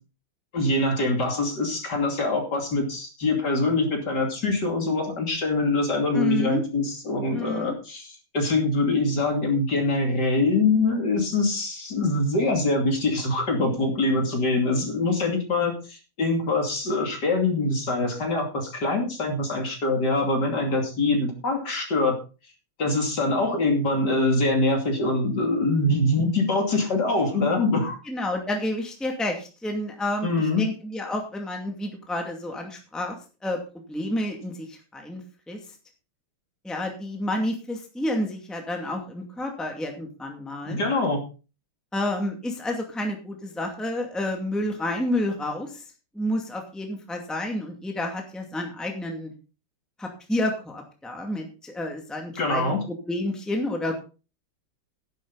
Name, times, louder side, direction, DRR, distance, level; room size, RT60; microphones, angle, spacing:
voice 1, 0.5-22.1 22.8-28.0 30.2-30.6 40.6-41.2 52.4-52.8, left 2 dB, 50° left, 2 dB, 3.3 m, -24 dB
voice 2, 6.1-6.6 7.3-7.7 28.1-30.3 30.6-33.2 33.4-33.6 33.9-35.6 36.6-40.8 41.9-45.8 46.1-49.3 50.0-54.0, left 1 dB, ahead, 2 dB, 2.1 m, -30 dB
11.0 x 11.0 x 4.1 m, 0.33 s
omnidirectional pair, 2.3 m